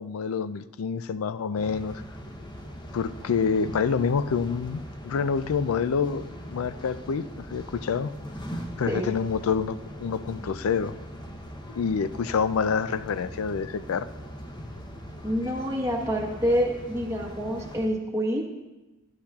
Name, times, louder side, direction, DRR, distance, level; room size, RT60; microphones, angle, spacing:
voice 1, 0.0-2.0 2.9-8.1 8.8-11.0 11.7-14.1, left 6 dB, 75° left, 14 dB, 0.4 m, -27 dB
sound 1, 1.5-17.9, equal, 20° left, 0.8 m, -41 dB
voice 2, 15.2-18.4, equal, 15° right, -1 dB, 1.2 m, -27 dB
13.0 x 9.9 x 2.4 m, 1.1 s
head